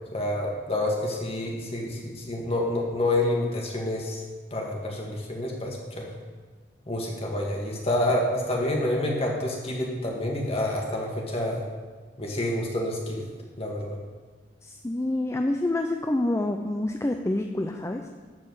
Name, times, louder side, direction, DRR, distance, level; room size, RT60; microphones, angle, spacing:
voice 1, 0.1-4.2 4.5-6.1 6.9-11.6 12.2-13.3 13.6-14.0, left 1 dB, 35° left, -1 dB, 2.0 m, -28 dB
voice 2, 14.6-18.0, left 1 dB, 15° left, 4 dB, 0.5 m, -27 dB
12.0 x 4.8 x 8.0 m, 1.4 s
head